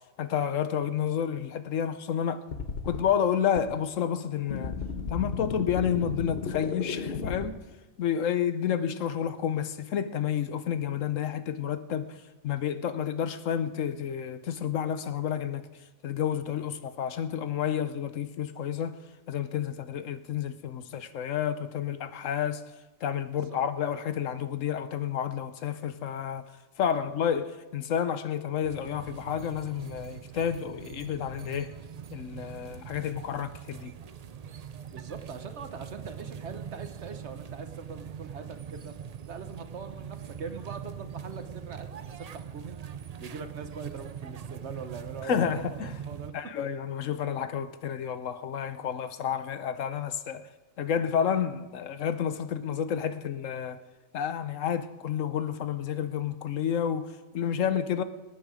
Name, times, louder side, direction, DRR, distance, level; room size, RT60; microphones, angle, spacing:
voice 1, 0.2-2.4 2.8-4.8 5.1-7.6 8.0-12.2 12.4-15.7 16.0-19.0 19.3-22.6 23.0-26.4 26.8-31.7 32.1-34.0 45.3-45.9 46.3-50.5 50.8-53.8 54.1-58.0, left 8 dB, 70° left, 1.1 m, -30 dB
sound 1, 2.5-3.0 3.6-3.7 4.5-7.5, left 5 dB, 50° left, 1.2 m, -34 dB
sound 2, 28.6-46.3, right 8 dB, 80° right, 0.3 m, -42 dB
voice 2, 34.9-38.9 39.3-42.8 43.2-46.3, right 5 dB, 55° right, 1.2 m, -42 dB
25.0 x 9.3 x 5.0 m
omnidirectional pair, 1.4 m